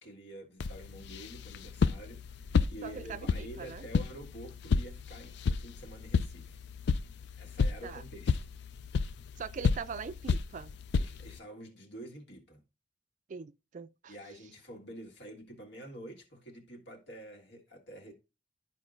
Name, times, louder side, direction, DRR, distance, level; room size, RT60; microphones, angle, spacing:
voice 1, 0.0-6.6 7.4-8.4 10.9-12.6 14.1-18.1, right 1 dB, 80° left, 1.7 m, -48 dB
sound 1, 0.6-11.4, left 5 dB, 65° left, 0.4 m, -32 dB
voice 2, 2.8-3.8 7.8-8.0 9.4-10.7 13.3-14.1, right 6 dB, 45° right, 0.3 m, -42 dB
12.5 x 4.7 x 2.5 m
head